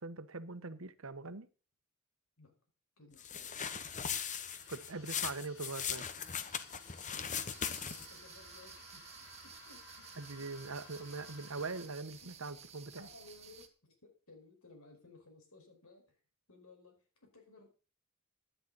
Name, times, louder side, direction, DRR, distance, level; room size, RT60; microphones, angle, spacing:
voice 1, 0.0-1.5 4.7-6.0 10.2-13.1, right 3 dB, 70° right, 1.1 m, -42 dB
voice 2, 3.0-3.6 5.0-5.1 7.1-9.1 9.4-10.1 11.0-11.1 12.2-12.3 13.0-16.2 16.5-17.7, left 3 dB, 85° left, 5.1 m, -59 dB
sound 1, 3.2-8.2, left 7 dB, 35° left, 1.0 m, -39 dB
sound 2, 4.1-11.8, left 3 dB, 60° left, 7.2 m, -57 dB
sound 3, 7.5-13.7, right 7 dB, 30° right, 1.6 m, -54 dB
15.5 x 10.5 x 4.1 m
head